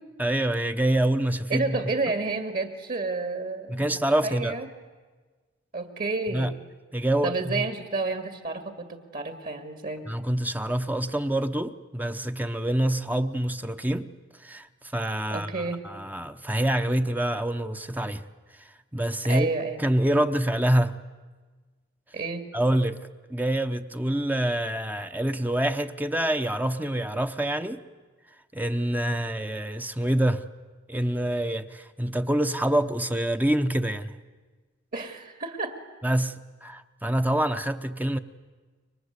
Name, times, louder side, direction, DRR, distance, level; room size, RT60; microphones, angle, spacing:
voice 1, 0.2-1.8 3.7-4.5 6.3-6.5 6.9-7.6 10.1-14.1 14.4-14.7 14.9-18.2 18.9-19.5 19.8-21.0 22.5-23.0 23.3-27.8 28.5-30.4 30.9-34.1 36.0-36.3 36.6-38.2, right 1 dB, 10° right, 9 dB, 0.8 m, -26 dB
voice 2, 1.5-3.9 4.2-4.7 5.7-6.5 7.2-10.1 15.3-15.8 19.2-19.8 22.1-22.4 34.9-35.8, right 3 dB, 45° right, 7 dB, 2.3 m, -30 dB
30.0 x 24.0 x 8.3 m, 1.4 s
head